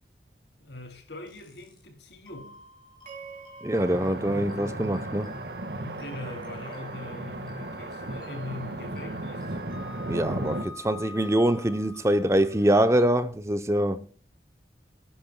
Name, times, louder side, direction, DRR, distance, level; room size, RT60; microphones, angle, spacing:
voice 1, 0.6-2.7 5.8-9.6, left 2 dB, 75° left, 2.9 m, -42 dB
sound 1, 1.3-1.8 2.3-13.1, left 4 dB, 25° left, 4.7 m, -49 dB
sound 2, 3.1-5.4, right 6 dB, 45° right, 2.4 m, -49 dB
voice 2, 3.6-5.3 10.1-14.1, right 1 dB, 15° right, 0.7 m, -24 dB
sound 3, 3.7-10.6, right 1 dB, 70° right, 1.6 m, -35 dB
26.0 x 10.5 x 2.3 m
head